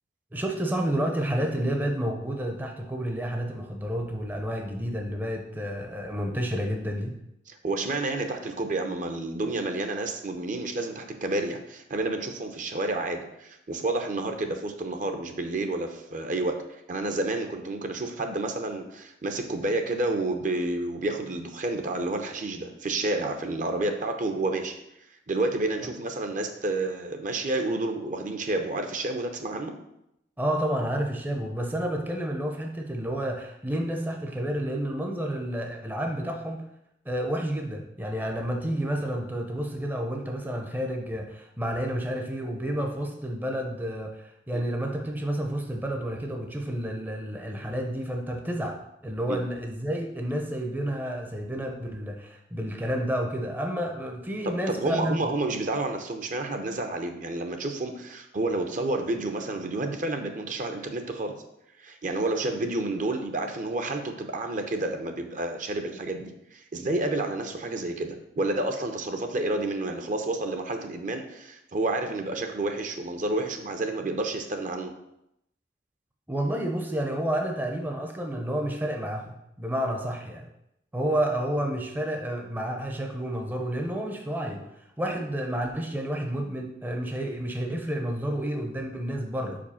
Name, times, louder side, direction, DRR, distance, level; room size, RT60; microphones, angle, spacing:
voice 1, 0.3-7.2 30.4-36.6 37.1-55.3 76.3-80.5 80.9-84.6 85.0-89.6, right 1 dB, 10° right, 2 dB, 0.6 m, -30 dB
voice 2, 7.5-24.8 25.3-29.8 44.5-44.6 49.3-49.4 54.4-61.4 61.8-74.9, right 2 dB, 45° right, 6 dB, 0.7 m, -30 dB
5.1 x 4.5 x 5.6 m, 0.82 s
head